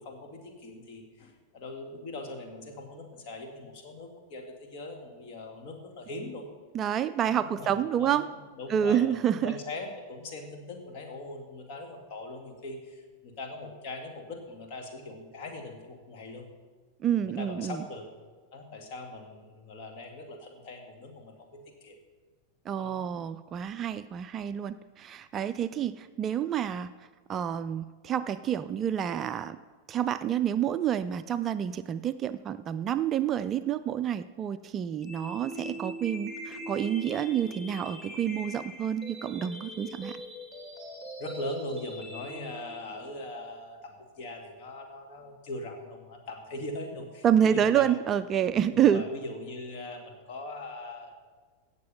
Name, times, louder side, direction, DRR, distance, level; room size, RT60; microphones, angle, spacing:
voice 1, 0.0-6.5 7.2-8.1 8.6-16.5 17.2-18.1 18.5-22.0 22.8-23.1 41.2-47.9 48.7-51.1, left 2 dB, 45° left, 2 dB, 2.2 m, -41 dB
voice 2, 6.7-8.3 8.7-9.6 17.0-17.8 22.7-26.9 27.3-29.6 29.9-40.2 47.2-49.0, right 9 dB, 30° right, 13 dB, 0.4 m, -28 dB
sound 1, 35.0-43.0, equal, 5° left, 3.1 m, -41 dB
17.0 x 6.7 x 5.4 m, 1.4 s
figure-of-eight pair, 90°, 0 cm